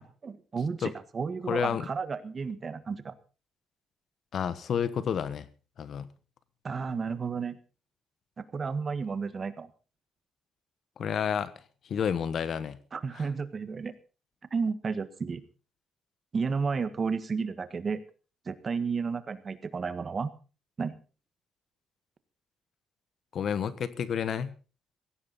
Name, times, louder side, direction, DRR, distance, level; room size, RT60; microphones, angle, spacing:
voice 1, 0.2-3.2 6.6-7.6 8.4-9.7 12.9-13.9 14.5-15.4 16.3-18.0 18.5-20.3 20.8-21.0, right 5 dB, 40° right, 12 dB, 1.6 m, -32 dB
voice 2, 1.5-1.9 4.3-5.5 5.8-6.1 11.0-11.5 11.9-12.8 13.1-13.3 23.3-24.5, left 7 dB, 60° left, 15 dB, 1.2 m, -30 dB
16.5 x 16.0 x 4.1 m, 0.36 s
cardioid pair, 90°, 0 cm